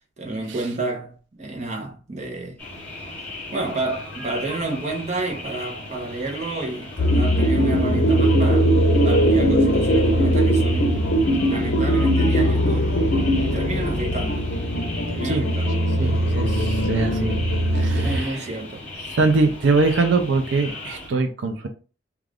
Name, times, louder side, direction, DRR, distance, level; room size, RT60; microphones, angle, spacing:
voice 1, 0.2-2.6 3.5-8.7 9.0-11.2 11.4-12.9 13.4-14.5 15.1-15.7 17.8-18.9, right 2 dB, 40° right, 0.7 m, -30 dB
sound 1, 2.6-21.1, left 2 dB, 10° left, 0.8 m, -37 dB
sound 2, 7.0-18.2, equal, 65° left, 0.6 m, -20 dB
voice 2, 15.8-17.4 17.7-18.4 19.1-21.7, right 3 dB, 80° right, 0.5 m, -23 dB
2.4 x 2.3 x 3.3 m
head